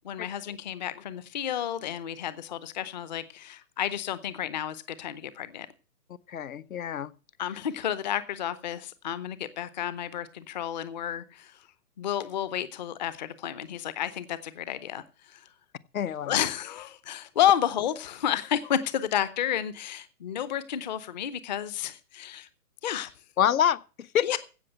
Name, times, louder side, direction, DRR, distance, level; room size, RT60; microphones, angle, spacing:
voice 1, 0.0-5.7 7.4-11.7 12.0-15.4 16.2-22.5 22.8-23.1 24.2-24.4, left 10 dB, 30° left, 0.7 m, -31 dB
voice 2, 6.3-7.1 15.9-16.4 23.4-24.4, left 9 dB, 65° left, 1.0 m, -27 dB
16.0 x 6.2 x 7.8 m
hypercardioid pair, 160°, 44 cm